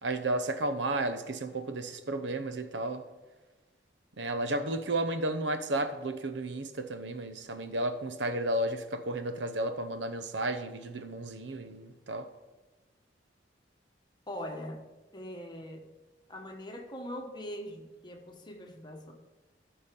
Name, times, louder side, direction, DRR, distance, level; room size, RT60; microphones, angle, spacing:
voice 1, 0.0-3.0 4.2-12.3, right 1 dB, 75° right, 0.8 m, -33 dB
voice 2, 14.3-14.8 15.1-15.8 16.3-19.1, equal, 25° left, 1.4 m, -41 dB
14.0 x 5.7 x 5.3 m
head